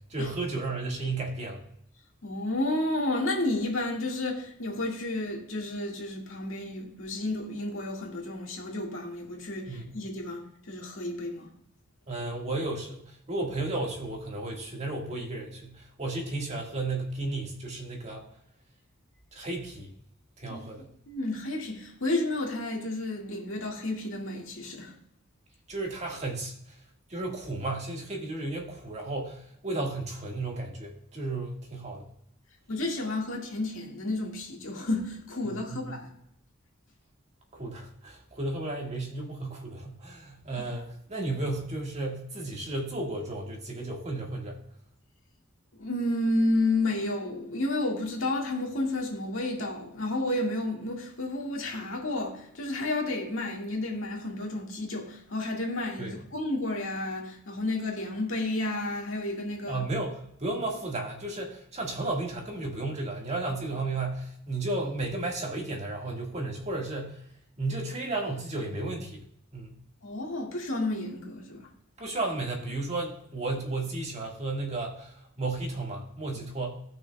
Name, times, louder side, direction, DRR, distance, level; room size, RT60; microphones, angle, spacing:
voice 1, 0.1-1.6 9.7-9.8 12.1-18.2 19.3-19.9 20.4-20.9 25.7-26.5 27.1-32.1 35.4-35.9 37.5-44.6 56.0-56.1 59.7-67.2 67.6-69.2 69.5-69.8 72.0-76.8, right 2 dB, 35° right, 1.8 m, -33 dB
voice 2, 2.2-11.5 20.5-20.6 21.1-24.9 32.7-36.1 45.8-59.8 70.0-71.7, left 2 dB, 70° left, 2.0 m, -31 dB
17.5 x 5.9 x 2.3 m
head